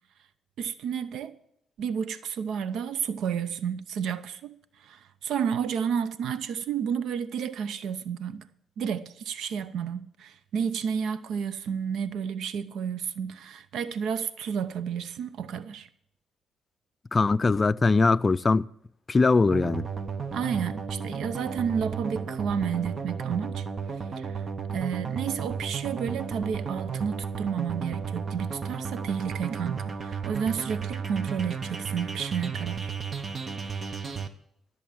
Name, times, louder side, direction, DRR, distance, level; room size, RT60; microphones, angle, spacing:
voice 1, 0.6-1.3 1.8-8.4 8.8-15.9 20.3-23.7 24.2-24.5 24.7-32.9, right 7 dB, 75° right, 0.7 m, -31 dB
voice 2, 17.1-18.7 19.1-19.9, left 3 dB, 30° left, 0.4 m, -21 dB
sound 1, 19.5-34.3, right 5 dB, 40° right, 1.2 m, -34 dB
14.5 x 7.1 x 8.6 m
cardioid pair, 90°, 0 cm